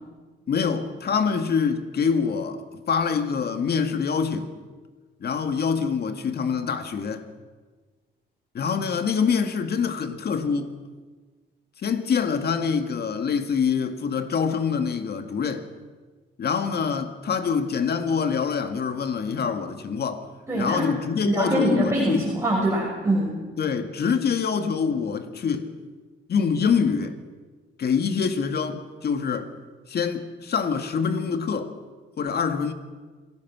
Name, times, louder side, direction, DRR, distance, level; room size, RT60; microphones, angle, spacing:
voice 1, 0.5-4.5 5.2-7.2 8.5-10.7 11.8-15.7 16.4-20.2 20.5-22.3 23.6-25.7 26.3-27.2 27.8-29.5 29.9-31.7 32.2-32.7, left 6 dB, 55° left, 1.9 m, -25 dB
voice 2, 20.5-20.9 21.2-23.3, right 1 dB, 15° right, 6.1 m, -23 dB
26.5 x 17.5 x 6.1 m
cardioid pair, 90°, 20 cm